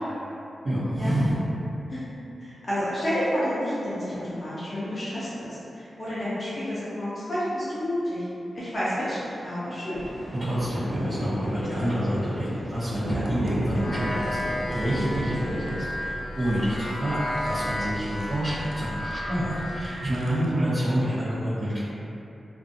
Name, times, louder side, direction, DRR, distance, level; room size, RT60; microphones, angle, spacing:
voice 1, 0.6-1.4 10.3-14.4 14.7-21.8, equal, 50° right, -16 dB, 0.9 m, -27 dB
voice 2, 2.4-8.3 8.5-10.0, equal, 30° left, -11 dB, 0.6 m, -30 dB
sound 1, 9.9-15.7, right 1 dB, 90° right, 0.7 m, -33 dB
sound 2, 12.8-13.6 14.4-16.9 17.3-20.5, right 1 dB, 75° right, 0.3 m, -45 dB
sound 3, 13.7-19.9, left 1 dB, 85° left, 0.4 m, -33 dB
2.5 x 2.3 x 2.6 m, 2.8 s
wide cardioid pair, 160°, 0 cm